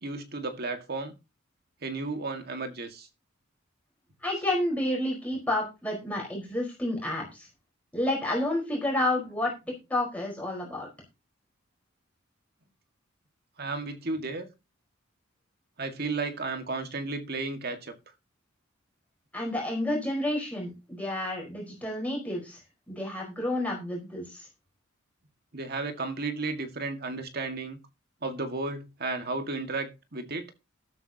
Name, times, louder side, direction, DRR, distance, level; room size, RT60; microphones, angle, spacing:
voice 1, 0.0-1.2 1.8-3.1 13.6-14.5 15.8-17.9 25.5-27.8 28.2-30.5, right 3 dB, 50° right, 1.9 m, -33 dB
voice 2, 4.2-7.5 7.9-9.5 9.9-10.9 19.3-22.6 22.9-24.5, left 1 dB, 5° left, 4.7 m, -30 dB
13.0 x 12.0 x 2.9 m
head